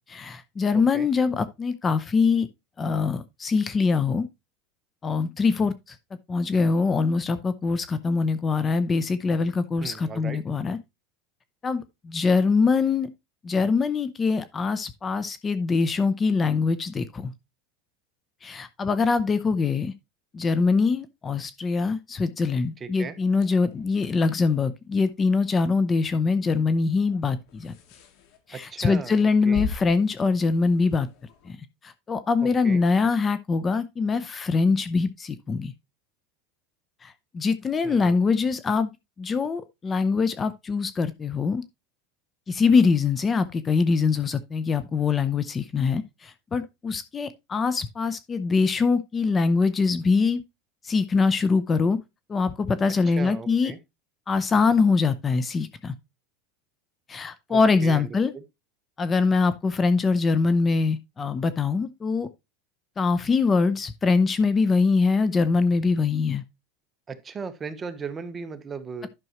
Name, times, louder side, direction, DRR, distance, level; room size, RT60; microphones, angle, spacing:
voice 1, 0.1-2.5 2.8-4.3 5.0-5.7 6.3-10.8 11.6-13.1 13.4-17.3 18.4-19.9 20.3-27.7 28.5-31.1 31.5-31.6 31.8-35.7 37.0-38.9 39.2-41.6 42.5-50.4 50.8-52.0 52.3-53.7 54.3-55.9 57.1-58.3 59.0-62.3 63.0-66.4, left 4 dB, 20° left, 0.6 m, -23 dB
voice 2, 0.7-1.1 9.8-10.4 22.8-23.2 28.5-29.7 32.4-32.8 37.8-38.2 53.2-53.8 57.5-58.1 58.3-58.4 67.1-69.1, right 5 dB, 20° right, 1.0 m, -37 dB
sound 1, 23.2-31.5, left 7 dB, 60° left, 1.9 m, -42 dB
11.0 x 6.1 x 3.0 m
supercardioid pair, 135°, 0 cm